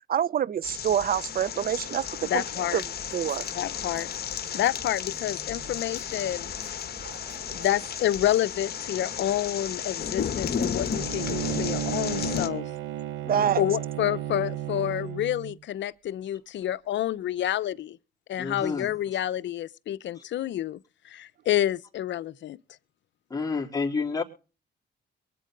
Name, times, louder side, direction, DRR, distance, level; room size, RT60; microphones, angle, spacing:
voice 1, 0.1-2.4 2.7-2.8 3.1-3.4 7.0-7.2 7.5-7.7 13.2-13.6, right 9 dB, 50° right, 0.5 m, -27 dB
sound 1, 0.6-12.5, left 7 dB, 50° left, 1.3 m, -33 dB
voice 2, 2.2-2.8 3.5-4.1 4.5-6.5 7.5-12.7 13.6-18.0 18.3-20.8 21.0-22.6, left 12 dB, 65° left, 0.7 m, -28 dB
sound 2, 2.9-8.3, equal, 20° right, 7.3 m, -50 dB
Bowed string instrument, 10.9-15.6, right 12 dB, 90° right, 0.8 m, -33 dB
voice 3, 18.4-18.9 23.3-24.2, left 4 dB, 20° left, 3.7 m, -30 dB
23.5 x 8.4 x 3.8 m
cardioid pair, 90°, 20 cm